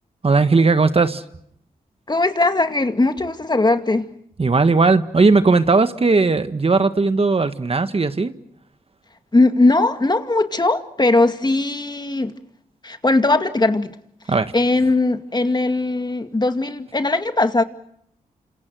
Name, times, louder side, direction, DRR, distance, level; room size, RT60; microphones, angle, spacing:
voice 1, 0.2-1.2 4.4-8.3 14.3-14.5, right 3 dB, 40° right, 1.6 m, -17 dB
voice 2, 2.1-4.1 9.3-12.3 12.8-13.9 14.5-17.6, left 2 dB, 30° left, 2.2 m, -19 dB
29.0 x 27.0 x 6.3 m
cardioid pair, 55°, 15 cm